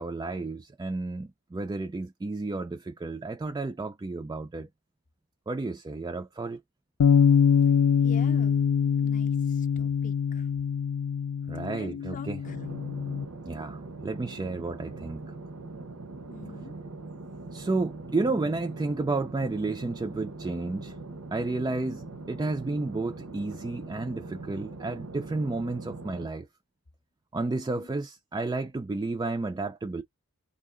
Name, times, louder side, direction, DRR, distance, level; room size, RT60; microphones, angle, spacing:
voice 1, 0.0-4.7 5.5-6.6 11.5-12.4 13.5-15.3 17.5-21.0 21.3-26.5 27.3-30.0, right 3 dB, 20° right, 0.3 m, -32 dB
Bass guitar, 7.0-13.3, left 7 dB, 80° left, 0.4 m, -24 dB
voice 2, 8.0-10.5 11.7-12.6 16.3-16.7 27.8-27.9, left 4 dB, 35° left, 0.6 m, -46 dB
sound 1, 12.4-26.3, right 3 dB, 75° right, 0.8 m, -42 dB
2.7 x 2.7 x 3.7 m
head